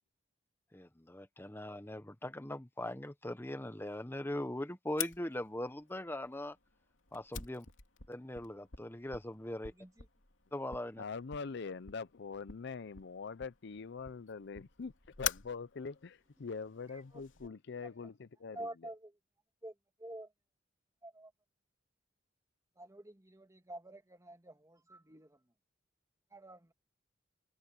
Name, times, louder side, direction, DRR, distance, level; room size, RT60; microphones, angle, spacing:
voice 1, 0.7-6.6 7.1-7.7 8.1-9.7 10.5-11.0, left 1 dB, 10° left, 1.1 m, -40 dB
Fire, 5.0-17.5, left 10 dB, 90° left, 2.9 m, -46 dB
voice 2, 11.0-14.9 15.2-18.7, left 5 dB, 65° left, 0.6 m, -43 dB
voice 3, 16.9-17.5 17.8-18.1 18.5-19.1 19.6-19.7 20.0-20.3 21.0-21.3 22.8-25.4 26.3-26.7, right 1 dB, 15° right, 1.9 m, -49 dB
head